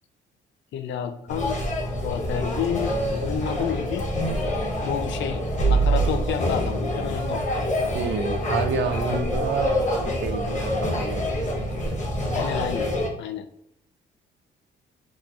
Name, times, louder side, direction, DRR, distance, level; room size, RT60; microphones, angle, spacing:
voice 1, 0.7-1.6 2.0-4.1 4.8-7.4 9.1-9.5 12.3-12.9 13.2-13.5, left 9 dB, 70° left, 10 dB, 0.4 m, -30 dB
sound 1, 1.3-13.1, equal, 40° left, 0.9 m, -26 dB
voice 2, 7.9-11.5 11.9-12.0, right 7 dB, 65° right, 9 dB, 0.4 m, -30 dB
3.8 x 2.9 x 2.3 m, 0.75 s
cardioid pair, 90°, 20 cm